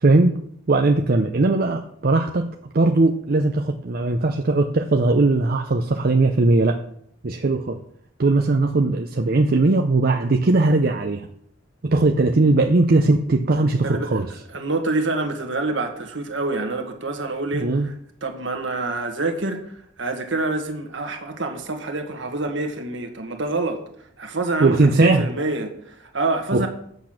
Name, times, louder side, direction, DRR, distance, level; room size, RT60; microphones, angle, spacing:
voice 1, 0.0-6.8 7.2-7.8 8.2-11.3 11.8-14.3 17.5-17.9 24.6-25.3 26.5-26.7, right 2 dB, 50° right, 0.6 m, -19 dB
voice 2, 13.8-14.2 14.5-17.9 18.2-19.6 20.0-23.8 24.2-26.7, right 2 dB, 65° right, 1.5 m, -26 dB
8.3 x 6.8 x 6.0 m
head